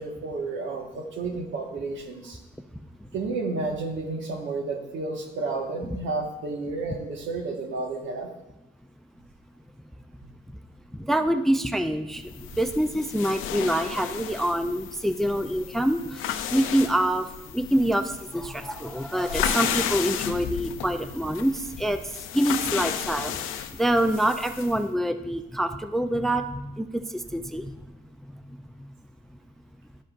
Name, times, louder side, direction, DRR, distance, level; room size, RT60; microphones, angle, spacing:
voice 1, 0.0-2.4 3.1-8.3, right 3 dB, 75° right, 2 dB, 1.4 m, -31 dB
voice 2, 11.1-12.2 12.6-16.0 16.5-17.3 17.5-18.0 18.3-22.0 22.3-23.3 23.8-26.9 27.3-27.7, right 1 dB, ahead, 9 dB, 0.4 m, -25 dB
sound 1, 12.3-24.8, left 9 dB, 90° left, 0.6 m, -33 dB
11.5 x 7.6 x 2.5 m, 0.95 s
cardioid pair, 90°, 20 cm